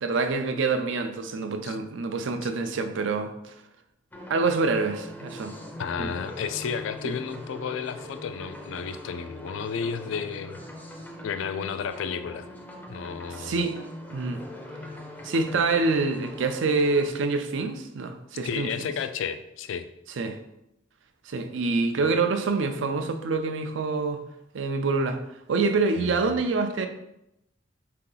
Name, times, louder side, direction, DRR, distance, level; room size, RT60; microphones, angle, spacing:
voice 1, 0.0-3.5 4.3-5.5 6.0-6.1 7.0-7.1 13.4-13.8 14.1-14.4 15.2-18.7 20.2-20.4 21.3-24.2 24.5-25.2 25.5-26.9, right 3 dB, 70° right, 0.4 m, -26 dB
sound 1, 4.1-17.1, left 1 dB, 10° left, 0.5 m, -42 dB
voice 2, 5.8-10.6 11.2-12.5 12.9-13.6 18.4-19.9 26.0-26.4, left 6 dB, 75° left, 0.3 m, -32 dB
3.7 x 2.8 x 3.8 m
head